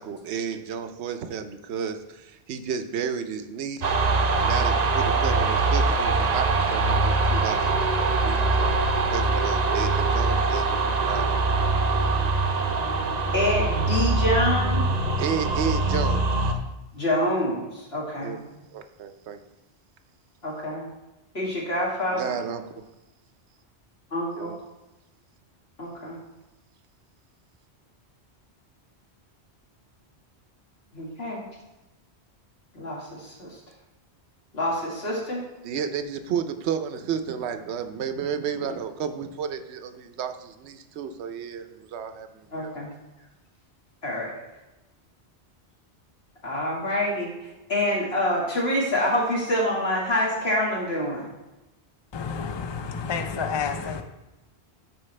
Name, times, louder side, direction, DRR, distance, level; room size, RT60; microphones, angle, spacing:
voice 1, 0.0-4.0 4.3-8.8 9.1-11.4 11.9-12.2 15.2-16.6 18.2-18.4 18.7-19.4 22.1-22.8 24.3-24.6 35.6-42.7, right 7 dB, 80° right, 8 dB, 1.0 m, -32 dB
sound 1, 3.8-16.5, right 3 dB, 45° right, 0.7 m, -23 dB
voice 2, 13.0-14.8 16.9-18.4 20.4-20.8 21.3-22.4 24.1-24.6 25.8-26.2 30.9-31.4 32.7-33.6 34.5-35.4 42.5-42.9 44.0-44.4 46.4-51.3, left 1 dB, 65° left, -4 dB, 2.2 m, -26 dB
voice 3, 52.1-54.0, left 6 dB, 35° left, 7 dB, 0.4 m, -30 dB
13.5 x 4.6 x 3.3 m, 1.0 s
omnidirectional pair, 1.1 m